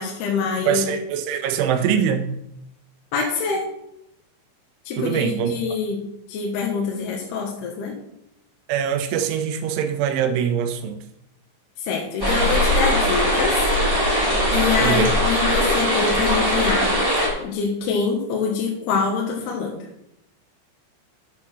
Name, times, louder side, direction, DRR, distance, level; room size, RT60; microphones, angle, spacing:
voice 1, 0.0-0.9 3.1-3.6 4.9-6.0 6.3-8.0 11.8-13.7 14.5-16.9 17.4-19.8, left 5 dB, 65° left, -1 dB, 3.2 m, -25 dB
voice 2, 0.7-2.3 5.0-5.5 8.7-11.0 14.8-15.1, right 8 dB, 85° right, 8 dB, 3.5 m, -23 dB
sound 1, 12.2-17.3, equal, 5° right, 2.7 m, -20 dB
8.8 x 7.3 x 6.1 m, 0.79 s
omnidirectional pair, 5.3 m